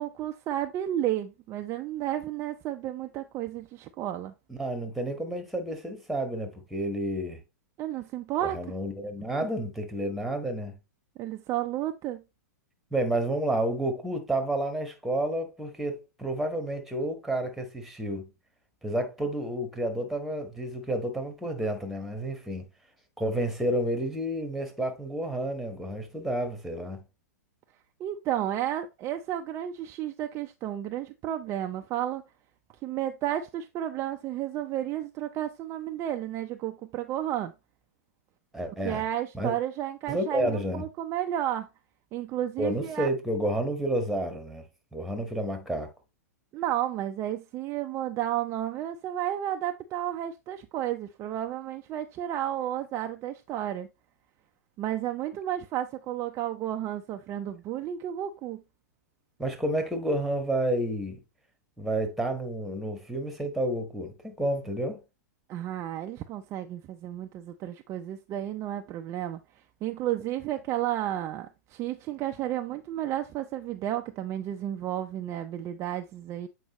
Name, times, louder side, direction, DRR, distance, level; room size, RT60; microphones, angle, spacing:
voice 1, 0.0-4.3 7.8-8.6 11.2-12.2 28.0-32.2 32.8-37.5 38.8-41.7 42.1-43.1 46.5-53.9 54.8-58.6 65.5-69.4 69.8-76.5, right 12 dB, 30° right, 0.5 m, -32 dB
voice 2, 4.5-7.4 8.4-10.8 12.9-18.3 18.8-22.6 23.2-27.0 38.5-39.0 39.3-39.5 40.1-40.8 42.6-44.6 44.9-45.9 59.4-61.2 61.8-65.0, right 1 dB, ahead, 1.4 m, -30 dB
7.8 x 4.7 x 3.0 m
hypercardioid pair, 115°, 9 cm